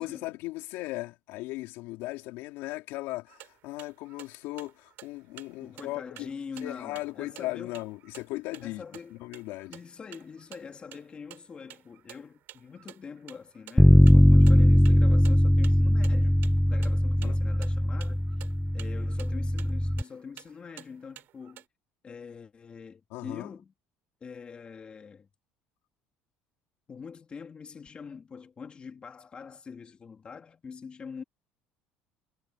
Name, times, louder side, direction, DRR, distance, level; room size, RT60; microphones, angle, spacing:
voice 1, 0.0-6.3 6.6-8.8 9.1-9.8 17.2-17.3 23.1-23.6, left 19 dB, 80° left, 4.0 m, -37 dB
sound 1, 3.3-21.6, right 14 dB, 60° right, 6.1 m, -52 dB
voice 2, 5.6-7.8 8.6-9.2 9.7-16.4 16.7-18.3 18.7-21.7 22.0-23.7 24.2-25.3 26.9-31.2, left 6 dB, 30° left, 2.8 m, -44 dB
Bass guitar, 13.8-20.0, equal, ahead, 0.3 m, -20 dB
cardioid pair, 130°, 4 cm